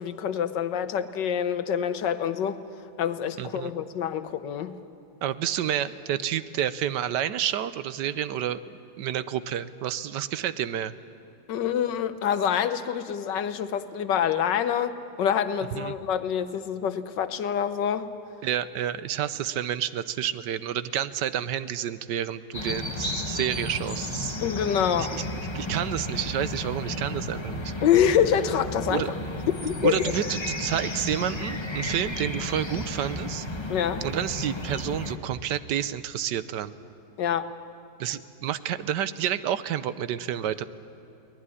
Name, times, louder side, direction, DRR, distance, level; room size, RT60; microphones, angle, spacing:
voice 1, 0.0-2.6 3.0-4.7 11.5-18.1 24.4-25.1 27.8-29.1 29.5-30.0 33.7-34.0 37.2-37.5, left 8 dB, 85° left, 11 dB, 1.6 m, -26 dB
voice 2, 3.4-3.7 5.2-8.6 9.0-10.9 15.7-15.9 18.4-24.4 25.1-27.7 28.9-29.1 29.8-33.5 34.0-36.7 38.0-40.7, right 10 dB, 80° right, 14 dB, 1.4 m, -29 dB
sound 1, 22.5-35.2, left 1 dB, 15° left, 1.2 m, -33 dB
23.0 x 18.5 x 9.9 m, 2.8 s
omnidirectional pair, 1.9 m